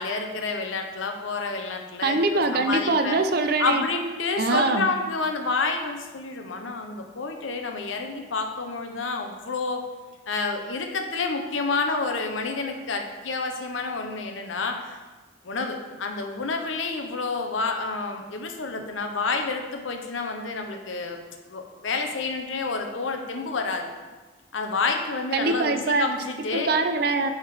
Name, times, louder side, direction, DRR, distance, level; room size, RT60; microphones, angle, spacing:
voice 1, 0.0-3.2 3.6-9.8 10.3-15.0 15.4-21.2 21.5-23.9 24.5-26.7, left 4 dB, 80° left, 4 dB, 0.8 m, -29 dB
voice 2, 2.0-3.8 4.4-4.9 25.3-26.1 26.5-27.3, right 3 dB, 50° right, 7 dB, 0.5 m, -23 dB
7.2 x 3.6 x 4.9 m, 1.3 s
head